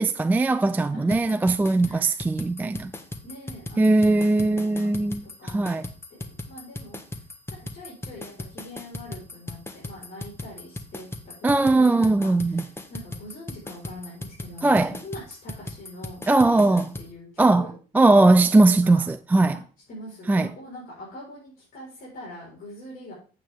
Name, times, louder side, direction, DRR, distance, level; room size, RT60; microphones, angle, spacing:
voice 1, 0.0-2.9 3.8-5.9 11.4-12.6 14.6-15.0 16.3-16.9 17.4-19.6 20.3-20.5, right 2 dB, 10° right, 0.3 m, -20 dB
voice 2, 0.9-1.3 1.8-2.2 3.2-5.1 5.4-5.8 6.1-7.2 7.7-17.7 18.3-19.1 19.9-23.1, left 1 dB, 55° left, 4.7 m, -43 dB
sound 1, 1.1-17.1, left 2 dB, 15° left, 1.1 m, -38 dB
8.8 x 8.0 x 3.5 m
cardioid pair, 110°, 17 cm